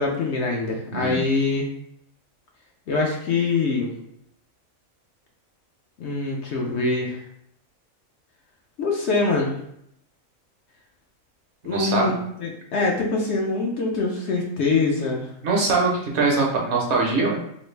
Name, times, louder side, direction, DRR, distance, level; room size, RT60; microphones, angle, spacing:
voice 1, 0.0-1.7 2.9-3.9 6.0-7.2 8.8-9.6 11.6-15.3, left 3 dB, 65° left, 0 dB, 0.8 m, -24 dB
voice 2, 11.6-12.2 15.4-17.4, right 3 dB, 60° right, -1 dB, 0.9 m, -22 dB
3.1 x 2.5 x 3.2 m, 0.73 s
omnidirectional pair, 1.4 m